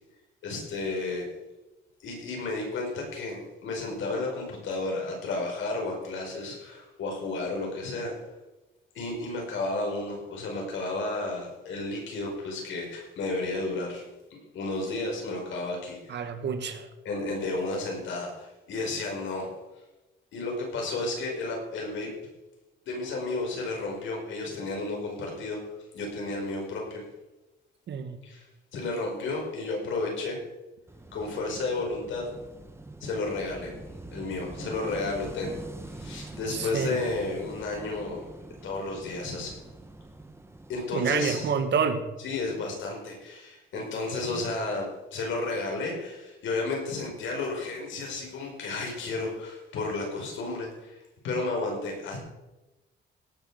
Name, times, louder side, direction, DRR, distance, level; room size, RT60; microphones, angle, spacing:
voice 1, 0.4-1.3 2.0-8.2 8.9-14.0 14.5-16.3 17.0-19.5 20.3-22.1 22.9-25.6 25.9-27.0 28.2-28.4 28.7-30.4 31.1-32.3 33.0-33.8 34.1-35.6 35.9-38.2 38.6-39.5 40.7-41.5 42.2-44.9 45.1-51.0 51.2-52.2, left 3 dB, 75° left, 0 dB, 5.4 m, -32 dB
voice 2, 16.1-16.9 27.9-28.2 36.5-37.0 40.9-42.0 43.7-43.9, right 6 dB, 65° right, 8 dB, 1.6 m, -28 dB
Wind / Waves surf, 30.9-40.9, right 2 dB, 10° right, 1.4 m, -44 dB
17.5 x 6.6 x 6.4 m, 1.0 s
cardioid pair, 90°, 20 cm